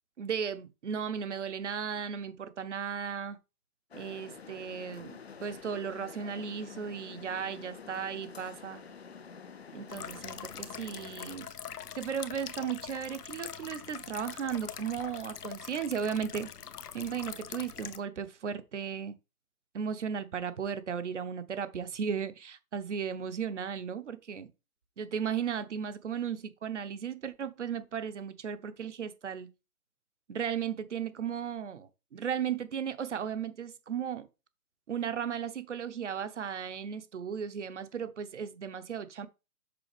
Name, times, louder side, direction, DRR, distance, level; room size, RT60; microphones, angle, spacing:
voice 1, 0.2-3.4 3.9-8.8 9.7-11.5 12.0-16.5 16.9-19.1 19.7-24.5 25.0-29.5 30.3-34.3 34.9-39.3, right 7 dB, 50° right, 0.9 m, -35 dB
sound 1, 3.9-11.4, left 6 dB, 45° left, 0.6 m, -48 dB
sound 2, 9.9-18.0, left 8 dB, 90° left, 0.9 m, -43 dB
6.9 x 4.3 x 3.4 m
hypercardioid pair, 170°, 46 cm